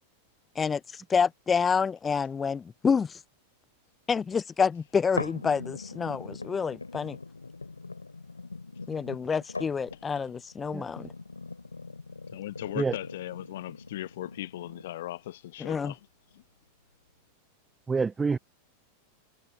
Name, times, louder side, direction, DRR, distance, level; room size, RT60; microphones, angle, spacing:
voice 1, 0.6-3.2 4.1-7.2 8.9-11.1 15.7-15.9, left 6 dB, 15° left, 0.6 m, -28 dB
sound 1, 5.2-15.2 15.7-15.8, left 3 dB, 80° left, 4.0 m, -41 dB
voice 2, 12.3-16.0 16.3-16.4, left 14 dB, 55° left, 1.1 m, -38 dB
voice 3, 17.9-18.4, right 4 dB, 15° right, 0.9 m, -27 dB
figure-of-eight pair, 90°, 0 cm